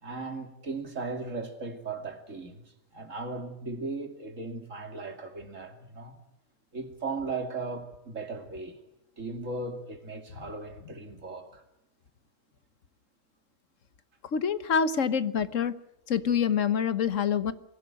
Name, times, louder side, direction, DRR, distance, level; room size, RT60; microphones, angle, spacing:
voice 1, 0.0-2.6 2.9-6.2 6.7-8.8 9.2-11.6, right 3 dB, 90° right, 3.0 m, -37 dB
voice 2, 14.2-15.7 16.1-17.5, left 7 dB, 80° left, 1.5 m, -26 dB
24.0 x 16.5 x 9.0 m
omnidirectional pair, 1.3 m